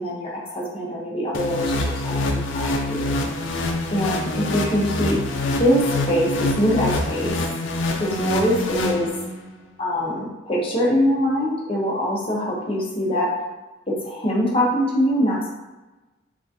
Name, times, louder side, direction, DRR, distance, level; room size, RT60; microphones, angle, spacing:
voice 1, 0.0-3.1 3.9-5.2 5.4-7.3 8.0-9.1 9.8-13.3 13.9-15.5, equal, 30° left, -4 dB, 0.7 m, -23 dB
sound 1, 1.3-9.5, left 2 dB, 80° left, 0.4 m, -25 dB
3.7 x 2.4 x 2.6 m, 1.1 s
head